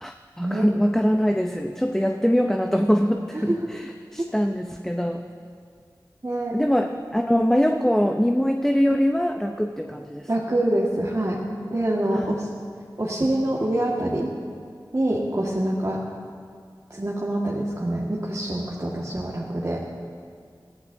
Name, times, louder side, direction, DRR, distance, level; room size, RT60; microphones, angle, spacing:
voice 1, 0.0-5.2 6.5-10.3 12.1-12.3, equal, 5° left, 4 dB, 0.7 m, -23 dB
voice 2, 6.2-6.6 10.3-11.4 11.7-12.5 13.0-14.3 14.9-16.0 16.9-19.8, right 1 dB, 40° right, -5 dB, 1.7 m, -25 dB
22.5 x 15.5 x 2.7 m, 2.1 s
wide cardioid pair, 50°, 8 cm